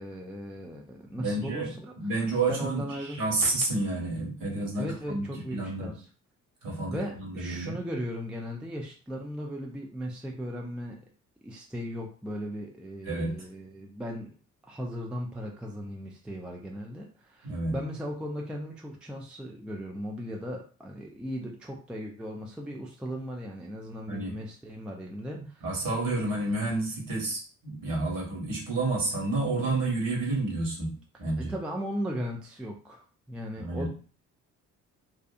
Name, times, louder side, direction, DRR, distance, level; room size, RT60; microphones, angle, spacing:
voice 1, 0.0-1.9 2.5-3.2 4.8-6.1 6.9-11.0 11.4-14.3 14.6-25.7 31.4-33.9, equal, ahead, 0 dB, 0.4 m, -37 dB
voice 2, 1.1-1.7 2.0-5.2 5.5-6.0 6.6-7.7 13.0-13.3 17.4-17.8 24.1-24.4 25.6-30.9 31.2-31.5 33.6-33.9, right 2 dB, 50° right, -2 dB, 1.4 m, -30 dB
2.6 x 2.4 x 2.4 m, 0.39 s
figure-of-eight pair, 45°, 42 cm